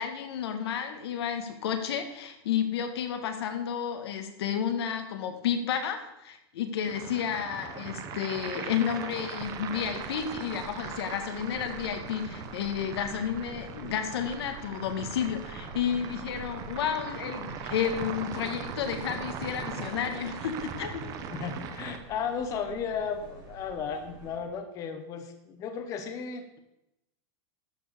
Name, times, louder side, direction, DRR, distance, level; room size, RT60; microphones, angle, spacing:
voice 1, 0.0-21.1, left 8 dB, 75° left, 7 dB, 1.7 m, -31 dB
sound 1, 6.8-22.0, right 6 dB, 30° right, 0.9 m, -40 dB
sound 2, 9.4-24.4, right 5 dB, 55° right, 4.5 m, -49 dB
voice 2, 21.3-26.6, left 6 dB, 25° left, 6 dB, 1.0 m, -35 dB
12.0 x 4.8 x 6.8 m, 0.88 s
supercardioid pair, 170°, 13 cm